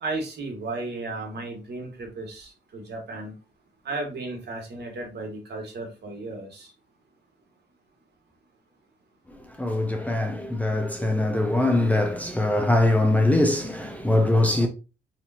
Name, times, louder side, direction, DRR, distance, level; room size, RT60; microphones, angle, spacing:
voice 1, 0.0-3.3 3.8-6.7, right 2 dB, 55° right, 1.6 m, -34 dB
voice 2, 9.6-14.7, left 1 dB, 5° left, 0.6 m, -22 dB
4.3 x 2.8 x 2.8 m
cardioid pair, 90°, 20 cm